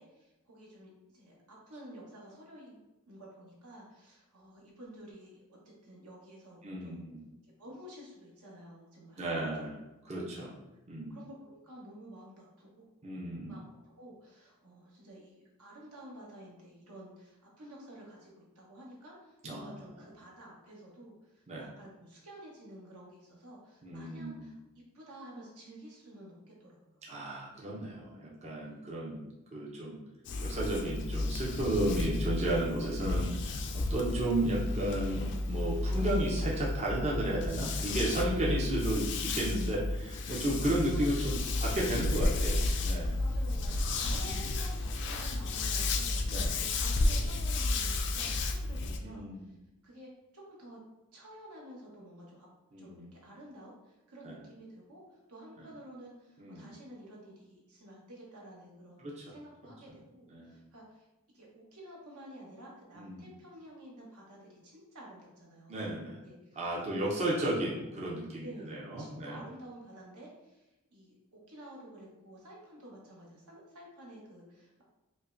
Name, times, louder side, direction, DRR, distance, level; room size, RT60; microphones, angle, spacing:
voice 1, 0.0-2.8 3.1-7.0 7.6-9.5 11.1-12.9 13.5-13.7 14.0-24.6 24.9-27.1 28.6-28.9 40.9-41.0 43.2-49.6 49.8-50.8 51.1-52.5 52.8-61.1 61.3-65.8 66.2-67.3 67.6-67.8 68.4-74.8, right 1 dB, 80° right, -3 dB, 1.1 m, -51 dB
voice 2, 6.6-7.2 9.2-9.7 10.0-10.5 10.9-11.1 13.0-13.6 19.4-19.7 21.5-21.7 23.8-24.5 27.0-29.2 29.5-30.0 30.4-43.2 46.3-46.6 49.0-49.4 52.7-53.1 54.2-54.3 55.6-55.7 56.4-56.7 59.0-59.3 60.3-60.5 62.9-63.3 65.7-66.2 66.6-69.4, right 1 dB, 30° right, -4 dB, 0.5 m, -33 dB
sound 1, 30.2-49.0, left 2 dB, 55° left, 0.4 m, -32 dB
5.1 x 2.1 x 2.5 m, 1.0 s
head